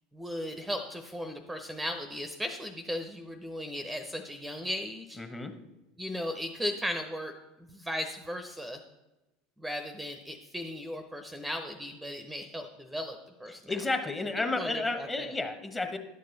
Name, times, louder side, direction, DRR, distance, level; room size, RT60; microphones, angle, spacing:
voice 1, 0.1-5.2 6.0-7.3 7.6-8.8 9.6-13.8 14.6-15.3, equal, 5° right, 7 dB, 0.7 m, -36 dB
voice 2, 5.2-5.5 13.7-16.0, left 2 dB, 20° left, 6 dB, 1.2 m, -32 dB
11.0 x 6.6 x 4.0 m, 1.1 s
hypercardioid pair, 75°, 0 cm